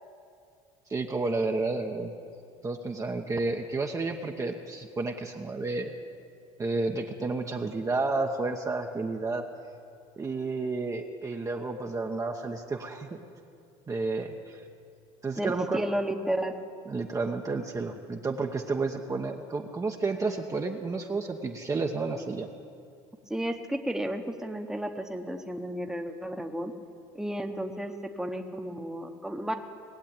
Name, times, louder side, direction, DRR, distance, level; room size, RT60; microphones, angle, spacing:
voice 1, 0.9-2.1 2.6-5.9 6.6-9.4 10.2-13.3 13.9-14.6 15.2-15.8 16.9-22.5, right 3 dB, 25° right, 2 dB, 1.0 m, -31 dB
voice 2, 15.4-16.5 23.3-26.7 27.1-27.9 28.2-29.5, right 1 dB, 5° right, 4 dB, 1.2 m, -32 dB
19.5 x 7.6 x 8.9 m, 2.4 s
supercardioid pair, 95°, 14 cm